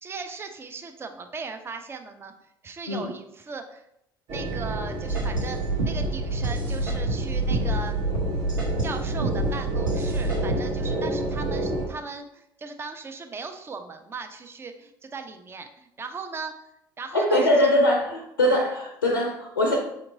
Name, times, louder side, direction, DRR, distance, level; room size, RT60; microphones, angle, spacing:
voice 1, 0.0-2.3 2.6-3.8 4.3-8.0 8.8-16.5 17.0-17.7, right 4 dB, 20° right, 6 dB, 0.5 m, -38 dB
sound 1, 4.3-11.9, right 2 dB, 50° right, 0.9 m, -29 dB
sound 2, 5.1-11.0, right 1 dB, 80° right, 0.6 m, -29 dB
voice 2, 17.1-19.8, left 1 dB, 80° left, 1 dB, 0.5 m, -22 dB
5.1 x 2.9 x 2.6 m, 0.79 s
figure-of-eight pair, 60°, 11 cm